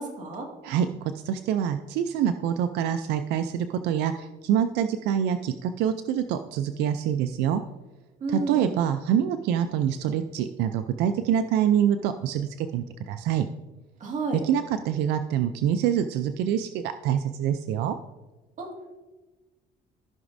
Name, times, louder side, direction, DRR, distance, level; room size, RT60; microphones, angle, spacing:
voice 1, 0.0-0.5 8.2-8.8 14.0-14.4 18.6-18.7, right 3 dB, 45° right, 1 dB, 2.0 m, -31 dB
voice 2, 0.6-7.6 8.3-13.5 14.4-18.0, right 9 dB, 85° right, 9 dB, 0.4 m, -26 dB
14.0 x 6.0 x 2.6 m, 1.2 s
cardioid pair, 110°, 17 cm